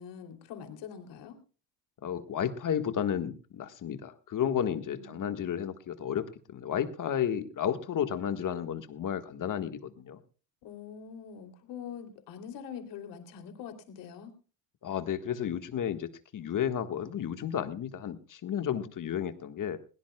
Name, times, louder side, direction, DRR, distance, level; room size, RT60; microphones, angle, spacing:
voice 1, 0.0-1.4 4.9-5.3 10.6-14.3, left 7 dB, 70° left, 6 dB, 3.1 m, -44 dB
voice 2, 2.0-10.2 14.8-19.8, left 9 dB, 45° left, 9 dB, 1.5 m, -32 dB
21.0 x 17.0 x 2.3 m, 0.35 s
supercardioid pair, 85°, 44 cm